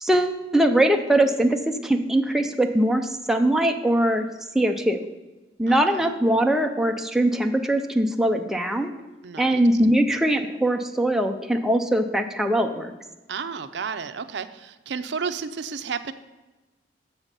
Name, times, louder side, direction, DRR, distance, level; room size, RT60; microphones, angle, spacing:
voice 1, 0.0-4.3 4.5-5.1 5.6-8.9 9.4-12.9, right 1 dB, ahead, 4 dB, 0.4 m, -21 dB
voice 2, 5.7-6.1 9.2-9.7 13.3-16.1, right 5 dB, 65° right, 10 dB, 0.5 m, -32 dB
7.1 x 5.6 x 6.6 m, 1.2 s
head